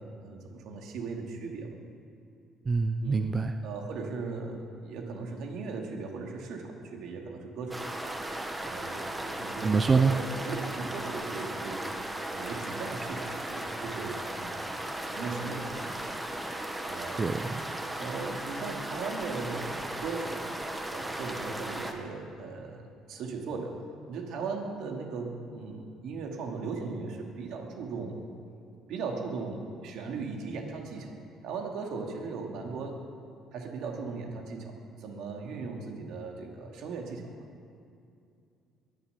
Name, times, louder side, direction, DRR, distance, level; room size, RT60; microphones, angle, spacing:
voice 1, 0.0-1.8 3.0-3.3 3.6-8.1 8.6-11.9 12.3-14.8 15.1-16.0 16.8-17.4 17.9-20.4 20.9-23.8 24.1-28.2 28.9-31.2 31.4-33.0 33.5-37.3, right 4 dB, 75° right, 1 dB, 2.5 m, -38 dB
voice 2, 2.7-3.5 9.6-10.1 17.2-17.8, right 4 dB, 30° right, 8 dB, 0.6 m, -25 dB
sound 1, 7.7-21.9, right 1 dB, 10° right, 1.4 m, -36 dB
22.0 x 7.3 x 8.3 m, 2.5 s
cardioid pair, 115°, 0 cm